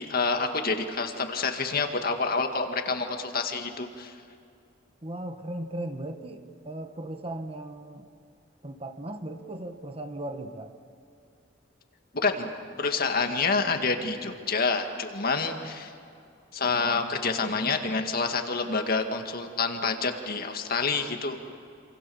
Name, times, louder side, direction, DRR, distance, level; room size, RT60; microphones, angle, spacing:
voice 1, 0.0-4.1 12.1-12.5 12.8-15.9 16.5-21.4, left 4 dB, 50° left, 5 dB, 2.1 m, -28 dB
voice 2, 5.0-8.1 8.6-10.7, right 1 dB, 30° right, 7 dB, 1.5 m, -37 dB
28.0 x 27.5 x 7.2 m, 2.4 s
head